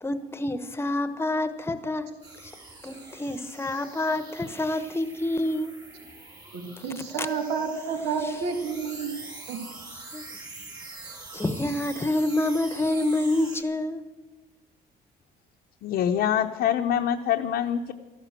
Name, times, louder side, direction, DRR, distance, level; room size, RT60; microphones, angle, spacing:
voice 1, 0.0-2.1 2.8-5.8 10.1-10.2 11.3-14.1, left 1 dB, 15° left, 1.0 m, -27 dB
sound 1, 2.2-13.6, right 3 dB, 20° right, 3.2 m, -44 dB
voice 2, 6.5-9.1 9.5-9.6, right 5 dB, 85° right, 2.1 m, -30 dB
voice 3, 15.8-17.9, left 9 dB, 70° left, 0.8 m, -25 dB
13.5 x 12.0 x 7.6 m
cardioid pair, 110°, 17 cm